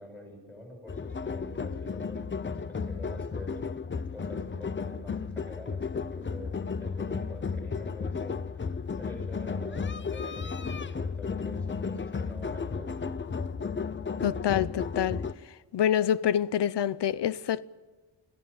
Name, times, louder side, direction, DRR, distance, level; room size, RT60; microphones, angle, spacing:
voice 1, 0.0-3.6 4.1-8.7 9.0-12.9, left 1 dB, 5° left, 7.4 m, -46 dB
sound 1, 0.9-15.3, left 5 dB, 30° left, 0.7 m, -34 dB
voice 2, 14.2-15.2 15.7-17.6, left 10 dB, 75° left, 0.8 m, -26 dB
26.5 x 16.5 x 8.9 m
wide cardioid pair, 165°, 42 cm